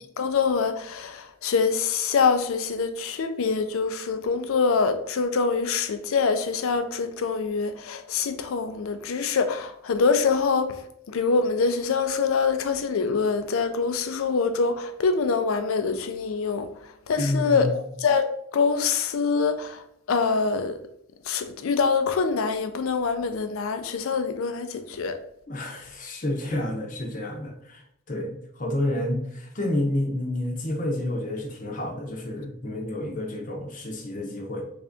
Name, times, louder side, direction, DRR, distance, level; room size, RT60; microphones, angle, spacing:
voice 1, 0.2-10.7 11.1-16.7 17.1-17.7 18.0-18.2 18.5-19.8 20.1-20.7 21.3-25.2, left 5 dB, 70° left, 0.4 m, -24 dB
voice 2, 17.2-17.8 25.5-34.6, left 1 dB, 35° left, 0.7 m, -29 dB
3.4 x 2.5 x 3.5 m
head